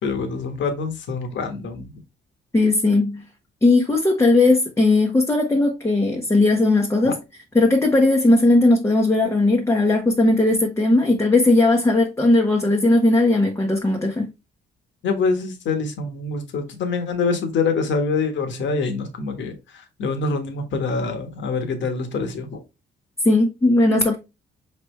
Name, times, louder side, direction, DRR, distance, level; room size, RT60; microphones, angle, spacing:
voice 1, 0.0-1.9 7.0-7.1 15.0-19.6 20.0-22.6, left 4 dB, 70° left, 1.3 m, -25 dB
voice 2, 2.5-3.2 3.6-7.2 7.5-14.3 23.2-24.2, left 2 dB, 15° left, 1.0 m, -17 dB
4.9 x 3.3 x 3.2 m
cardioid pair, 90°, 20 cm